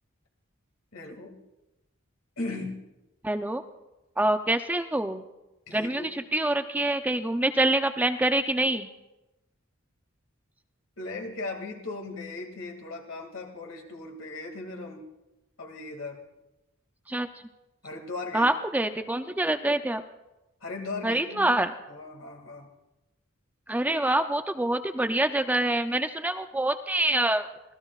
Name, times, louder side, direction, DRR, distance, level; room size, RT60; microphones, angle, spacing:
voice 1, 0.9-1.4 2.4-2.8 5.7-6.1 11.0-15.1 15.6-16.2 17.8-18.5 20.6-21.5 21.9-22.7, left 3 dB, 75° left, 2 dB, 2.3 m, -37 dB
voice 2, 3.2-3.6 4.2-5.2 5.7-8.9 17.1-17.3 18.3-20.0 21.0-21.7 23.7-27.5, right 1 dB, 10° right, 8 dB, 0.5 m, -26 dB
25.5 x 17.5 x 2.4 m, 0.98 s
head